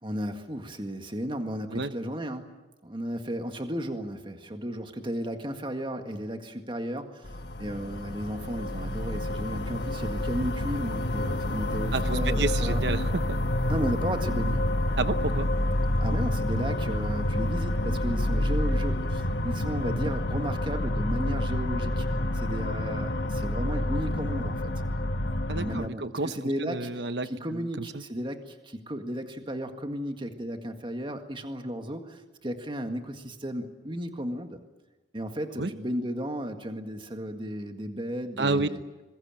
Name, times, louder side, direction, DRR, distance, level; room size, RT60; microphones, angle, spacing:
voice 1, 0.0-2.5 2.8-12.8 13.7-14.6 16.0-22.1 22.3-24.7 25.6-26.9 27.2-34.6 35.1-38.8, equal, 25° right, 6 dB, 1.8 m, -34 dB
sound 1, 7.2-25.9, left 1 dB, 60° left, 1.4 m, -28 dB
voice 2, 11.9-13.4 15.0-15.5 25.5-28.0 35.6-35.7 38.4-38.7, right 3 dB, 65° right, 11 dB, 0.9 m, -30 dB
26.0 x 22.0 x 9.0 m, 1.1 s
head